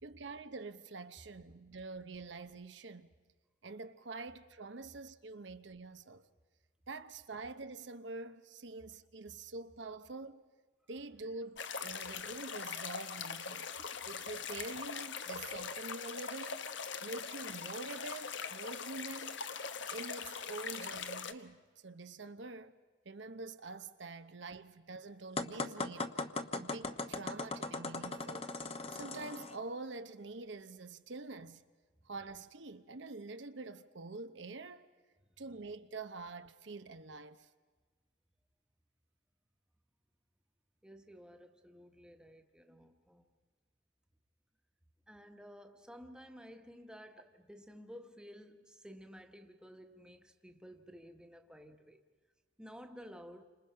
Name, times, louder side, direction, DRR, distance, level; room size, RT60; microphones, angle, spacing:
voice 1, 0.0-3.1 3.6-6.2 6.9-10.4 10.9-13.7 14.1-16.7 17.0-19.4 19.9-22.7 23.0-26.1 26.5-28.5 28.9-31.6 32.0-34.9 35.4-37.5, right 3 dB, 70° right, 0.9 m, -46 dB
sound 1, 11.6-21.3, left 6 dB, 70° left, 1.1 m, -42 dB
sound 2, 25.4-29.6, left 2 dB, 30° left, 1.1 m, -39 dB
voice 2, 40.8-43.3 45.1-52.0 52.6-53.4, equal, 5° right, 1.3 m, -53 dB
30.0 x 26.5 x 5.6 m
head